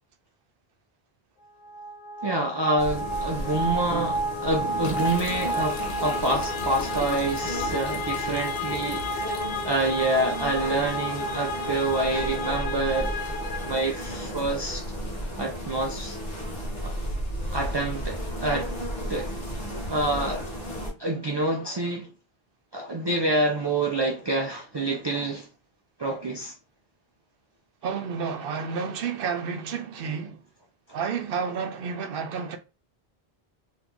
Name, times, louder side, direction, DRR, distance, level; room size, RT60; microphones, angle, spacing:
sound 1, 1.6-14.4, equal, 55° left, 0.7 m, -31 dB
voice 1, 2.2-9.3 9.6-13.2 13.6-14.8 15.4-16.2 16.8-16.9 17.5-18.7 19.1-19.3 19.9-20.5 21.0-22.1 22.7-25.5 26.0-26.5, right 2 dB, 45° right, 0.3 m, -27 dB
sound 2, 2.8-20.9, equal, 30° left, 1.1 m, -34 dB
sound 3, 4.8-10.0, left 3 dB, 70° left, 1.1 m, -39 dB
voice 2, 27.8-30.4 30.9-32.6, right 6 dB, 65° right, 0.7 m, -30 dB
2.8 x 2.3 x 3.6 m
omnidirectional pair, 1.0 m